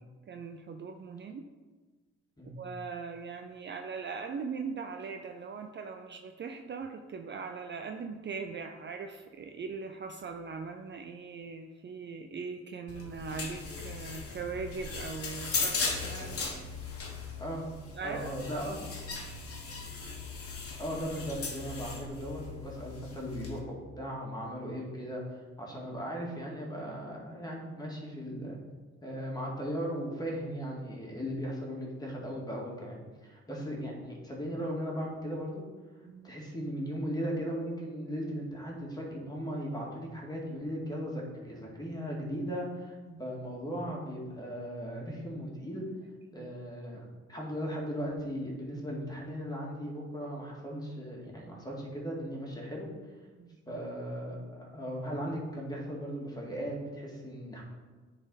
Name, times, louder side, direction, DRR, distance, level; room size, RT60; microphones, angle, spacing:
voice 1, 0.3-1.4 2.5-16.5 17.9-18.3 36.1-36.3 43.1-43.2 46.4-46.5 53.4-53.8, right 5 dB, 40° right, 5 dB, 0.5 m, -40 dB
sound 1, 12.9-23.6, left 4 dB, 50° left, 1.5 m, -38 dB
voice 2, 18.0-18.8 20.8-28.6 29.0-35.6 36.2-45.8 46.3-47.0 47.3-52.9 53.7-57.6, equal, 15° left, -2 dB, 2.1 m, -37 dB
9.9 x 4.1 x 4.0 m, 1.4 s
cardioid pair, 90°, 30 cm